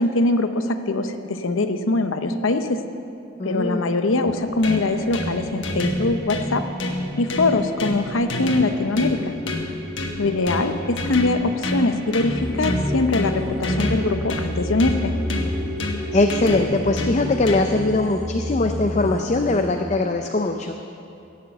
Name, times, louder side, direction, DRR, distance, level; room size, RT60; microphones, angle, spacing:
voice 1, 0.0-2.8 3.4-6.6 7.2-9.2 10.2-15.1, left 2 dB, 85° left, 8 dB, 0.8 m, -22 dB
voice 2, 3.4-3.9 15.8-20.7, left 2 dB, 35° left, 5 dB, 0.5 m, -21 dB
sound 1, 4.3-17.9, left 1 dB, 65° left, 1.5 m, -29 dB
sound 2, 12.3-19.6, left 1 dB, 15° left, 3.5 m, -30 dB
17.0 x 6.7 x 8.0 m, 2.7 s
head